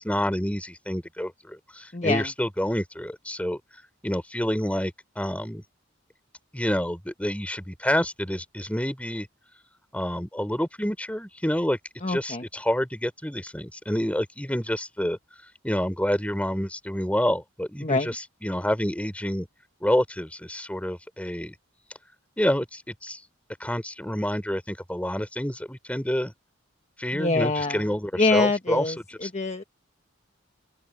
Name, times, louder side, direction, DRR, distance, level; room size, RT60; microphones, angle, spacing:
voice 1, 0.0-3.6 4.0-5.6 6.5-9.3 9.9-11.8 12.1-15.2 15.6-19.5 19.8-21.5 22.4-23.2 23.6-26.3 27.0-28.9 29.2-29.3, equal, 5° left, 3.8 m, -28 dB
voice 2, 1.9-2.3 12.0-12.4 17.8-18.1 27.1-27.8 28.1-29.6, left 3 dB, 35° left, 1.4 m, -25 dB
open air
head